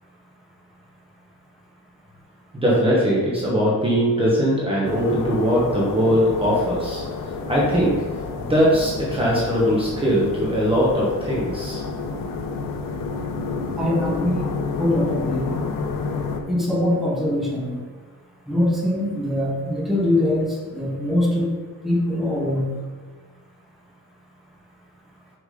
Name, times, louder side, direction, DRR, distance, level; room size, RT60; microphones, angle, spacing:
voice 1, 2.5-7.0 7.5-8.1 8.4-11.8, equal, 15° right, -6 dB, 1.2 m, -20 dB
sound 1, 4.8-16.4, left 4 dB, 75° left, 0.9 m, -30 dB
voice 2, 13.8-14.5 14.8-15.5 16.5-17.7 18.5-21.5 21.8-22.7, left 1 dB, ahead, -5 dB, 1.5 m, -22 dB
6.4 x 6.0 x 3.9 m, 1.4 s
cardioid pair, 170°, 33 cm